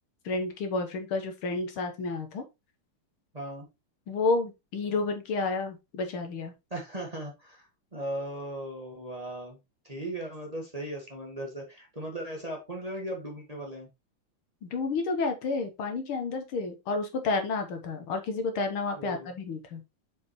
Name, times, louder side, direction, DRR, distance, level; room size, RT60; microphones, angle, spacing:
voice 1, 0.3-2.4 4.1-6.5 14.6-19.8, left 3 dB, 75° left, 6 dB, 2.1 m, -30 dB
voice 2, 3.3-3.7 6.7-9.6 9.8-13.9 18.9-19.3, right 1 dB, 20° right, 0 dB, 1.6 m, -37 dB
6.8 x 5.1 x 3.1 m, 0.23 s
omnidirectional pair, 2.4 m